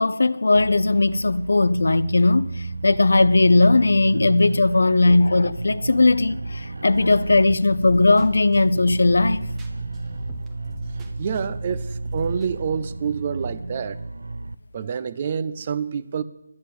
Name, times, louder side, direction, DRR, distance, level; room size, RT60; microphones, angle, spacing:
voice 1, 0.0-9.5, left 2 dB, 70° left, 0.6 m, -18 dB
sound 1, 0.5-14.6, right 2 dB, 80° right, 0.6 m, -32 dB
sound 2, 6.9-12.6, right 2 dB, 10° right, 0.9 m, -41 dB
voice 2, 11.2-14.0 14.7-16.2, right 7 dB, 30° right, 0.5 m, -27 dB
11.5 x 8.0 x 8.4 m
figure-of-eight pair, 170°, 0 cm